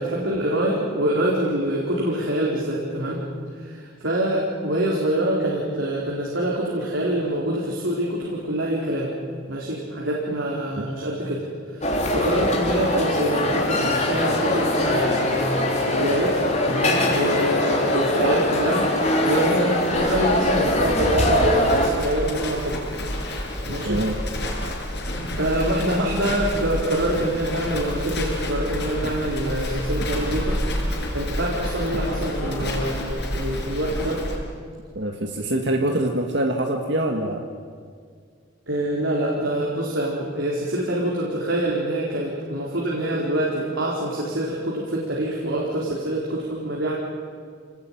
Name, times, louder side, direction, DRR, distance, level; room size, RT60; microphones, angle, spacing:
voice 1, 0.0-3.2 3.6-9.1 9.5-11.4 11.7-16.4 16.6-22.8 23.7-24.0 25.3-30.6 30.9-34.2 38.7-46.9, right 1 dB, 85° right, -4 dB, 4.5 m, -25 dB
sound 1, 11.8-21.9, left 1 dB, 35° left, 3.6 m, -22 dB
Livestock farm animals working animals, 19.9-34.4, left 1 dB, 55° left, 5.8 m, -29 dB
voice 2, 23.8-24.2 35.0-37.4, right 1 dB, 60° right, 3 dB, 1.8 m, -24 dB
27.5 x 19.5 x 9.2 m, 2.1 s
head